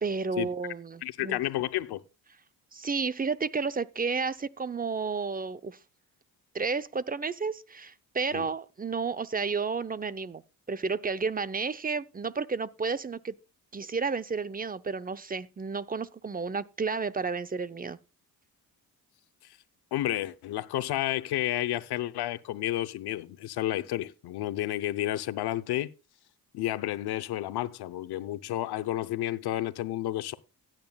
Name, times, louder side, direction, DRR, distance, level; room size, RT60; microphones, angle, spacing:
voice 1, 0.0-1.4 2.7-5.8 6.5-10.4 10.7-13.3 13.7-18.0, right 4 dB, 25° right, 0.6 m, -31 dB
voice 2, 1.0-2.0 8.3-8.5 19.9-25.9 26.5-30.3, left 14 dB, 85° left, 0.7 m, -31 dB
16.0 x 9.0 x 2.3 m
cardioid pair, 85°, 38 cm